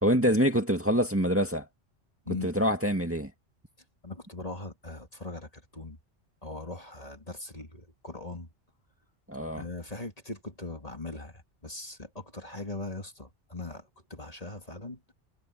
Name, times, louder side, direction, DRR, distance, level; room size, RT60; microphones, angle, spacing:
voice 1, 0.0-1.7 2.4-3.3 9.3-9.6, equal, 10° right, 2.0 m, -25 dB
voice 2, 4.0-6.0 6.4-8.5 9.6-15.0, left 2 dB, 30° left, 2.5 m, -40 dB
omnidirectional pair, 1.2 m